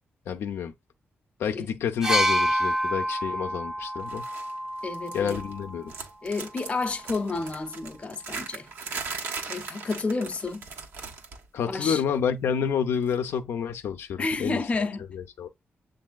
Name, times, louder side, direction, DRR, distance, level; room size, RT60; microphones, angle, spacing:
voice 1, 0.3-0.7 1.4-4.2 5.1-5.9 11.5-14.6 15.1-15.5, left 7 dB, 80° left, 0.5 m, -29 dB
sound 1, 2.0-5.8 6.9-7.0, equal, 15° right, 0.6 m, -28 dB
sound 2, 4.1-4.5 4.8-5.6 5.9-11.4 11.7-12.0 13.1-13.2, right 4 dB, 70° right, 1.2 m, -39 dB
voice 2, 4.8-5.4 6.2-8.7 9.5-10.6 11.7-12.0 14.2-15.0, left 3 dB, 30° left, 0.7 m, -30 dB
7.2 x 2.6 x 2.3 m
cardioid pair, 115°, 4 cm